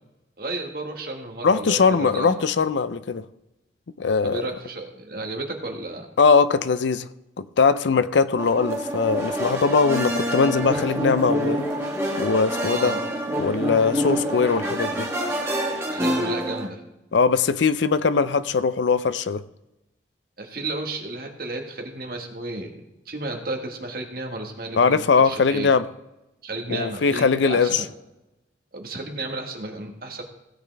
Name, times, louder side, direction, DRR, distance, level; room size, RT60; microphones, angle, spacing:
voice 1, 0.4-2.4 4.2-6.1 12.6-13.0 15.9-16.8 20.4-25.7 26.4-27.8 28.7-30.2, right 2 dB, 50° right, 3 dB, 1.7 m, -32 dB
voice 2, 1.4-3.3 4.0-4.4 6.2-7.1 7.4-11.6 12.2-12.9 13.4-15.1 17.1-19.4 24.7-25.8 26.7-27.8, left 5 dB, 75° left, 15 dB, 0.5 m, -21 dB
sound 1, 8.4-16.7, equal, 15° right, 1.6 m, -27 dB
16.5 x 8.5 x 3.4 m, 0.94 s
head